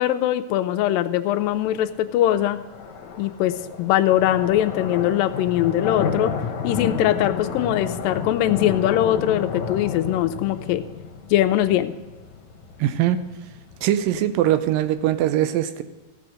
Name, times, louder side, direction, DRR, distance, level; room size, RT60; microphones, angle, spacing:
voice 1, 0.0-2.6 3.2-6.3 6.6-10.8 11.3-11.9, left 12 dB, 80° left, 8 dB, 2.2 m, -21 dB
sound 1, 1.4-15.3, left 6 dB, 65° left, 2.2 m, -32 dB
voice 2, 12.8-13.2 13.8-15.8, right 12 dB, 80° right, 11 dB, 2.3 m, -21 dB
15.0 x 6.9 x 6.3 m, 1.2 s
omnidirectional pair, 4.2 m